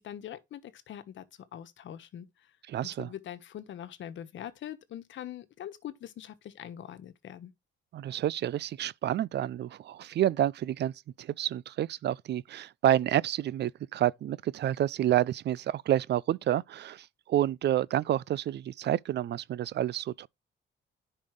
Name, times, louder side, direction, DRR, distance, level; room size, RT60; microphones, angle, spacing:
voice 1, 0.0-2.6 2.8-7.5, left 10 dB, 70° left, 1.3 m, -43 dB
voice 2, 2.7-3.1 7.9-10.9 11.2-20.3, right 12 dB, 60° right, 0.5 m, -29 dB
10.5 x 5.5 x 3.2 m
cardioid pair, 90°, 20 cm